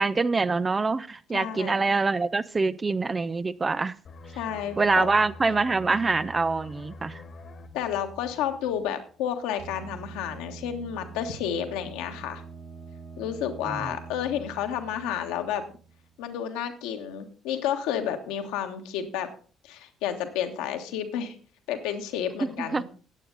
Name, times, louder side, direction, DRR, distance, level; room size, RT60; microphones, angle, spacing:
voice 1, 0.0-3.9 4.8-7.2 13.6-14.0 22.4-22.8, right 3 dB, 25° right, 15 dB, 0.5 m, -25 dB
voice 2, 1.3-1.9 4.4-5.1 7.7-12.4 13.2-15.6 16.2-19.3 19.6-21.3 21.7-22.8, left 9 dB, 65° left, 6 dB, 1.4 m, -31 dB
sound 1, 4.0-9.4 9.8-10.0, left 2 dB, 45° left, 1.5 m, -46 dB
sound 2, 9.6-16.2, right 5 dB, 60° right, 4.3 m, -44 dB
14.0 x 9.1 x 4.0 m, 0.39 s
figure-of-eight pair, 45°, 0 cm